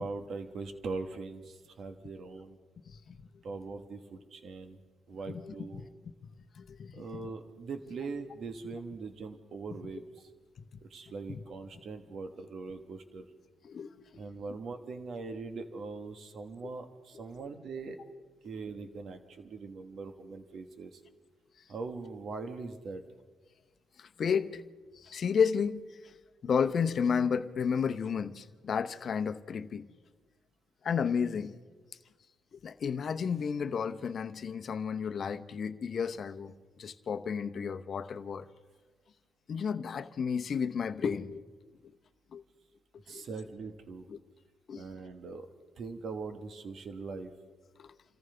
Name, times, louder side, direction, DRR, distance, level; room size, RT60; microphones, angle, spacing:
voice 1, 0.0-2.6 3.4-4.8 5.1-5.8 6.9-10.3 10.8-13.2 14.1-18.0 18.4-21.0 21.7-23.0 43.1-44.1 44.7-45.5 45.8-47.3, right 4 dB, 60° right, 1.3 m, -41 dB
voice 2, 2.9-3.2 5.3-5.9 6.2-6.3 6.6-7.0 10.6-10.7 11.3-11.4 13.6-14.2 24.0-24.6 25.0-26.1 26.4-29.9 30.8-31.5 32.5-38.5 39.5-41.4 42.3-42.4 43.1-43.3 44.1-44.2 44.7-44.8 47.8-47.9, left 6 dB, 50° left, 0.8 m, -32 dB
29.0 x 14.0 x 3.4 m
cardioid pair, 90°, 0 cm